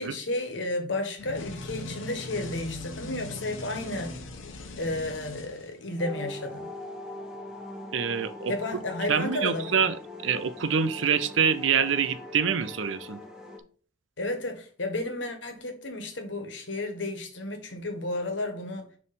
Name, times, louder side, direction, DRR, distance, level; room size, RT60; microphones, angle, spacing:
voice 1, 0.0-4.2 4.8-6.7 8.5-9.7 14.2-18.9, left 2 dB, 70° left, 1.4 m, -32 dB
sound 1, 1.2-6.1, left 2 dB, 90° left, 1.0 m, -40 dB
sound 2, 6.0-13.6, left 2 dB, 5° right, 1.0 m, -41 dB
voice 2, 7.9-8.5 9.1-13.2, right 7 dB, 75° right, 0.6 m, -26 dB
6.8 x 3.2 x 5.1 m
head